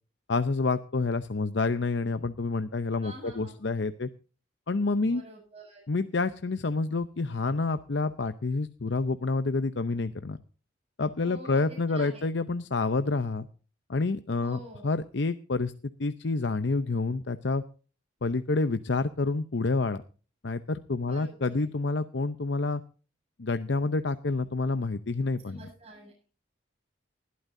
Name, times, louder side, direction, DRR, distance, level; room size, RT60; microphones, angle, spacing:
voice 1, 0.3-4.1 4.7-5.2 5.9-10.4 11.0-13.5 13.9-15.7 16.0-17.6 18.2-20.0 20.4-22.8 23.4-25.6, left 3 dB, 65° left, 11 dB, 0.7 m, -28 dB
voice 2, 3.0-3.6 5.1-5.8 11.2-12.3 14.4-14.9 21.0-21.7 25.5-26.2, right 1 dB, 30° right, -3 dB, 7.1 m, -47 dB
19.5 x 12.5 x 2.6 m, 0.38 s
head